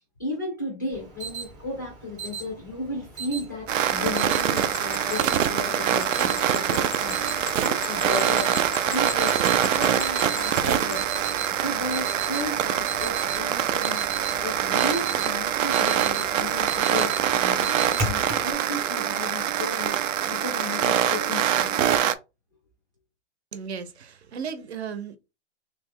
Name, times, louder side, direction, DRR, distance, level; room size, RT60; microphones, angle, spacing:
voice 1, 0.2-20.0 20.3-21.8, left 2 dB, 15° left, 0.4 m, -35 dB
Alarm, 0.9-18.5, right 4 dB, 15° right, 0.9 m, -37 dB
sound 1, 3.7-22.1, right 10 dB, 85° right, 0.6 m, -24 dB
sound 2, 3.9-11.0, left 11 dB, 70° left, 0.5 m, -38 dB
voice 2, 23.5-25.2, right 6 dB, 60° right, 0.9 m, -35 dB
3.1 x 3.0 x 3.6 m
hypercardioid pair, 170°, 37 cm